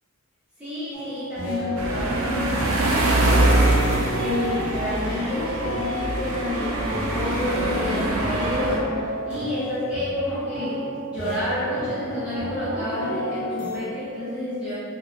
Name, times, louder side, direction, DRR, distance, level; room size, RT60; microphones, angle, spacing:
voice 1, 0.6-3.4 4.1-14.7, left 1 dB, 5° right, -13 dB, 0.7 m, -29 dB
sound 1, 0.9-13.8, equal, 35° left, 1.0 m, -32 dB
sound 2, 1.8-8.8, right 2 dB, 90° right, 0.5 m, -24 dB
2.9 x 2.8 x 3.0 m, 2.6 s
head